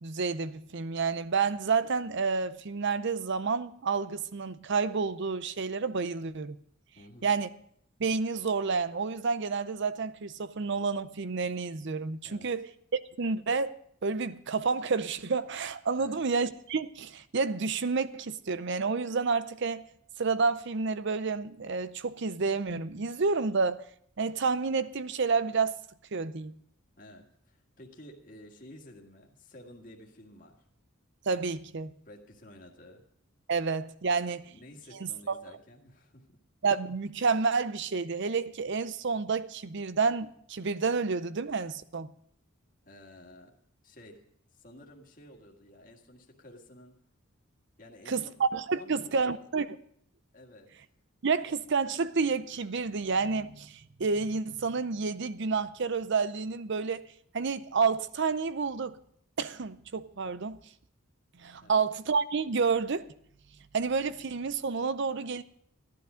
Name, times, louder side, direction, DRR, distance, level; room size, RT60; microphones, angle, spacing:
voice 1, 0.0-6.6 7.2-7.5 8.0-13.7 14.0-19.8 20.2-23.8 24.2-25.7 26.1-26.5 31.3-31.9 33.5-34.5 35.0-35.4 36.6-42.1 48.1-49.7 51.2-57.0 57.3-59.0 59.4-60.6 61.4-63.1 63.7-65.4, right 4 dB, 55° right, 0.6 m, -29 dB
voice 2, 7.0-7.3 12.2-12.5 16.0-16.2 27.0-30.6 32.1-33.0 34.5-36.4 42.8-43.5 43.8-44.2 44.5-47.0 47.8-48.4 48.7-49.5 50.3-50.7 61.6-61.8, left 1 dB, 40° left, 1.9 m, -52 dB
14.5 x 11.0 x 5.0 m
head